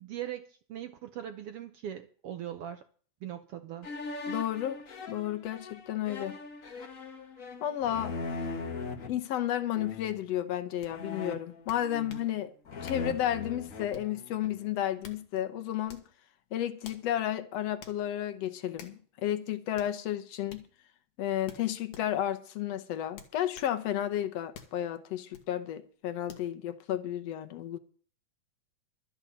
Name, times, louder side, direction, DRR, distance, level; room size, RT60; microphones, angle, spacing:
voice 1, 0.0-2.8 3.2-3.9, right 11 dB, 80° right, 1.3 m, -40 dB
sound 1, 3.8-9.1 9.7-10.2 10.9-12.3 12.7-14.6, left 3 dB, 40° left, 1.2 m, -40 dB
voice 2, 4.3-4.8 5.1-6.4 7.6-8.1 9.1-12.5 12.8-16.0 16.5-20.6 21.2-27.8, left 11 dB, 65° left, 1.8 m, -32 dB
sound 2, 10.8-10.9 11.7-12.3 12.8-13.1 13.9-14.2 14.8-15.2 15.8-16.1 16.8-17.1 17.8-18.0 18.8-19.0 19.7-19.9 20.5-20.7 21.5-22.1 23.1-23.7 24.5-24.8 25.3-25.5 26.3-26.5, left 7 dB, 90° left, 3.2 m, -49 dB
12.5 x 7.1 x 8.1 m
omnidirectional pair, 3.7 m